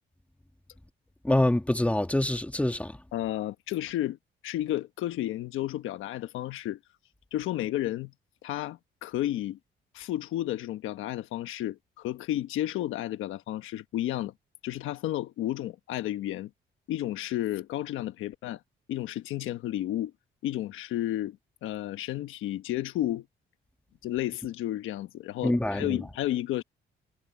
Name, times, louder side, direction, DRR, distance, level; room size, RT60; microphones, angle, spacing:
voice 1, 1.2-3.0 25.4-26.0, left 1 dB, 5° left, 1.7 m, -25 dB
voice 2, 3.1-4.2 4.4-6.8 7.3-8.1 8.4-9.6 9.9-14.3 14.6-16.5 16.9-18.6 18.9-20.1 20.4-23.3 24.0-26.6, left 14 dB, 90° left, 1.2 m, -32 dB
cardioid pair, 90°, 20 cm